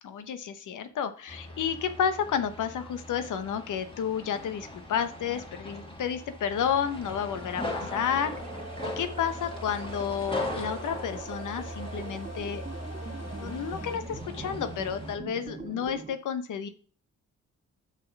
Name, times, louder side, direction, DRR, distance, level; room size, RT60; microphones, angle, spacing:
voice 1, 0.0-8.4 9.0-12.6 13.2-16.7, left 8 dB, 80° left, 10 dB, 1.0 m, -31 dB
sound 1, 1.3-15.2, left 1 dB, 15° left, 2.9 m, -39 dB
sound 2, 6.5-14.0, right 2 dB, 55° left, 1.4 m, -46 dB
sound 3, 7.9-16.2, right 4 dB, 20° right, 0.6 m, -44 dB
6.6 x 6.2 x 5.9 m, 0.41 s
cardioid pair, 85°, 30 cm